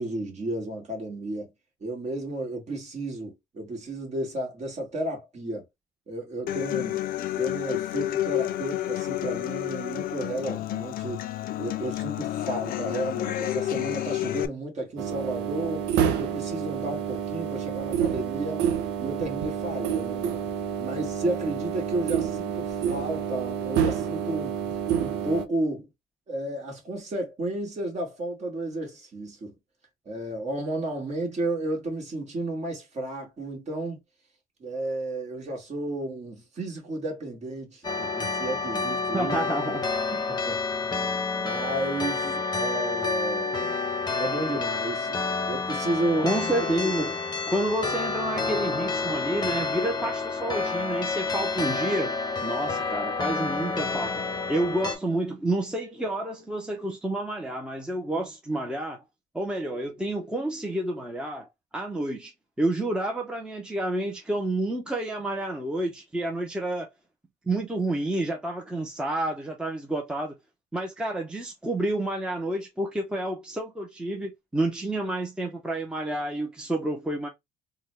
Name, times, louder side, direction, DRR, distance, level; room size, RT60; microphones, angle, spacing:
voice 1, 0.0-1.5 1.8-5.7 6.1-7.0 7.4-11.3 11.6-15.8 16.2-18.7 19.0-20.4 20.8-24.6 25.0-25.9 26.3-29.5 30.1-34.0 34.6-39.4 40.1-41.0 41.4-43.7 44.2-45.2 45.5-46.3, right 1 dB, 40° right, 1.8 m, -32 dB
Human voice / Acoustic guitar, 6.5-14.5, left 13 dB, 60° left, 0.4 m, -30 dB
sound 1, 15.0-25.5, right 8 dB, 85° right, 0.6 m, -28 dB
sound 2, 37.8-55.0, left 4 dB, 25° left, 0.8 m, -29 dB
voice 2, 39.1-39.9 42.2-42.3 46.2-47.2 47.5-54.2 54.5-59.0 59.3-61.5 61.7-62.3 62.6-66.9 67.5-70.3 70.7-77.3, right 1 dB, 5° right, 0.7 m, -29 dB
3.8 x 2.2 x 3.1 m
cardioid pair, 110°, 17 cm